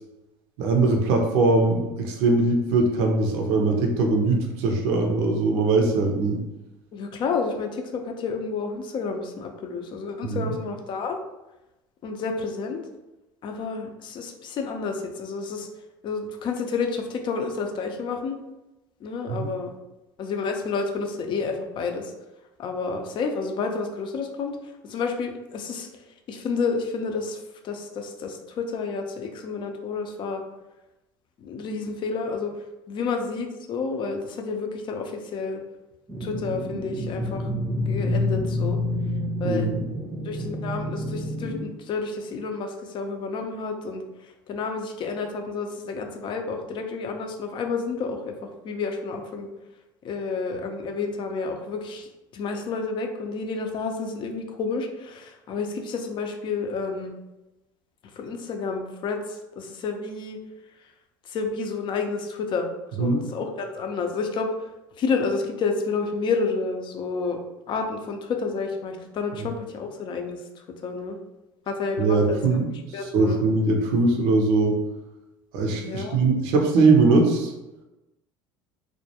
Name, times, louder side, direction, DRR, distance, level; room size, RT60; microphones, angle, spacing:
voice 1, 0.6-6.4 10.2-10.5 19.3-19.5 39.4-39.8 63.0-63.2 72.0-72.7 73.1-74.8 75.5-77.5, right 3 dB, 65° right, 2 dB, 0.5 m, -21 dB
voice 2, 6.9-11.2 12.0-12.9 13.4-15.7 16.0-18.4 19.0-19.7 20.2-22.1 22.6-25.9 26.3-30.4 31.4-35.6 36.2-37.5 37.9-38.8 39.4-39.7 40.2-49.5 50.0-57.1 58.1-60.4 61.2-62.7 63.0-64.5 65.0-67.4 67.7-71.2 71.7-72.6 72.9-73.4 75.8-76.2, left 4 dB, 45° left, 4 dB, 0.4 m, -30 dB
sound 1, 36.1-41.6, left 1 dB, 5° right, 0.5 m, -28 dB
2.2 x 2.1 x 2.8 m, 1.0 s
hypercardioid pair, 75°, 11 cm